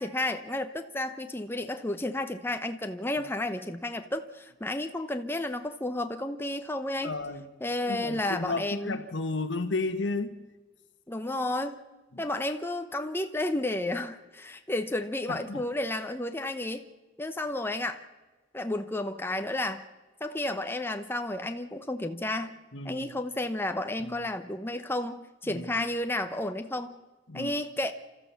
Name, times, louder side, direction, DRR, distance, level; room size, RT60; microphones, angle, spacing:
voice 1, 0.0-7.1 7.6-9.0 11.1-11.8 12.2-16.8 17.2-18.0 18.5-19.8 20.2-22.5 22.8-27.0 27.3-27.9, left 1 dB, 10° left, 0.9 m, -32 dB
voice 2, 7.0-7.5 7.9-10.4 12.1-12.2 15.3-15.7 22.7-23.1 24.0-24.3 25.5-25.8 27.3-27.5, left 3 dB, 65° left, 1.4 m, -33 dB
29.5 x 14.0 x 7.0 m
head